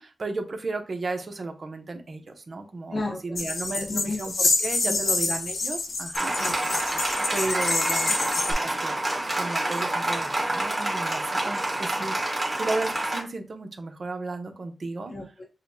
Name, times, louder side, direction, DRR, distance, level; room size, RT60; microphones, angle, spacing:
voice 1, 0.0-6.3 7.3-8.1 8.6-9.0 9.4-15.1, right 3 dB, 50° right, 5 dB, 0.8 m, -34 dB
voice 2, 2.9-3.4 3.8-5.3 6.4-7.3 9.6-9.9 11.4-12.1 15.1-15.4, left 2 dB, 45° left, -1 dB, 0.9 m, -36 dB
sound 1, 3.4-8.5, left 3 dB, 75° left, 0.8 m, -27 dB
Applause, 6.1-13.2, right 1 dB, 15° right, 1.3 m, -28 dB
6.5 x 2.2 x 2.7 m, 0.31 s
wide cardioid pair, 110°, 0 cm